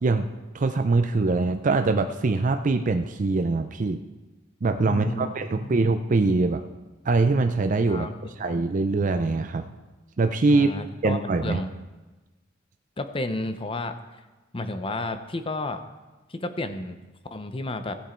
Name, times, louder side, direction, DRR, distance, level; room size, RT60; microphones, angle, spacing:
voice 1, 0.0-4.0 4.6-6.6 7.1-9.6 10.2-10.7 11.0-11.6, right 3 dB, 40° right, 6 dB, 0.4 m, -23 dB
voice 2, 4.9-5.9 7.9-8.3 10.5-11.7 13.0-14.0 14.5-15.8 16.3-17.0 17.3-17.9, left 2 dB, 30° left, 9 dB, 0.7 m, -31 dB
16.0 x 7.3 x 4.4 m, 1.2 s
head